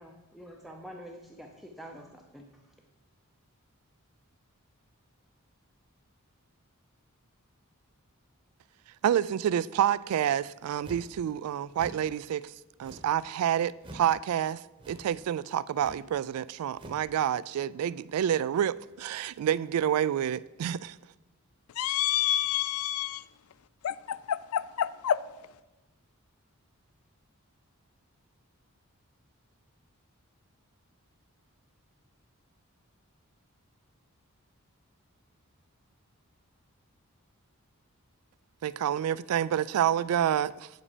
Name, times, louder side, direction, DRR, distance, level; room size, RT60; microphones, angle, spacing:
voice 1, 0.0-2.5, equal, ahead, 0.6 m, -46 dB
voice 2, 9.0-12.4 12.8-14.6 14.9-21.0 38.6-40.7, right 10 dB, 85° right, 0.3 m, -28 dB
sound 1, 10.8-11.2 11.7-12.1 12.8-13.2 13.8-14.1 14.8-15.2 15.7-16.1 16.7-17.1, right 1 dB, 20° right, 0.9 m, -47 dB
voice 3, 21.8-23.2 23.8-25.2, left 11 dB, 80° left, 0.4 m, -28 dB
8.5 x 7.3 x 5.0 m
head